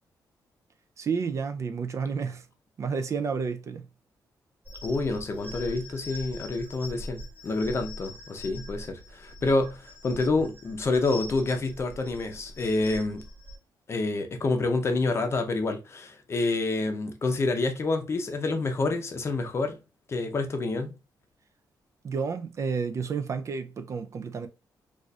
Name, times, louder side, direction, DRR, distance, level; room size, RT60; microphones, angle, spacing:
voice 1, 1.0-2.4 2.8-3.8 22.0-24.5, right 5 dB, 45° right, 0.3 m, -30 dB
sound 1, 4.6-13.6, left 1 dB, 15° right, 1.5 m, -43 dB
voice 2, 4.8-13.2 13.9-19.8 20.1-20.9, left 3 dB, 35° left, 0.6 m, -28 dB
4.0 x 2.4 x 2.3 m
cardioid pair, 125°, 7 cm